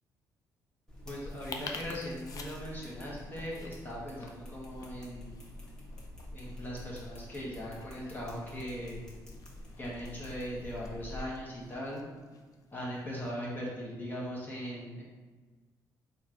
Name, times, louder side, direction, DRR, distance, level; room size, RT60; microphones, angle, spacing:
sound 1, 0.9-11.2, left 1 dB, 5° left, 1.3 m, -47 dB
voice 1, 1.0-5.4 6.3-9.0 9.8-12.1 12.7-15.0, equal, 25° left, -4 dB, 1.2 m, -39 dB
sound 2, 1.2-13.3, left 4 dB, 50° left, 0.5 m, -51 dB
4.3 x 2.5 x 4.4 m, 1.3 s
cardioid pair, 100°, 8 cm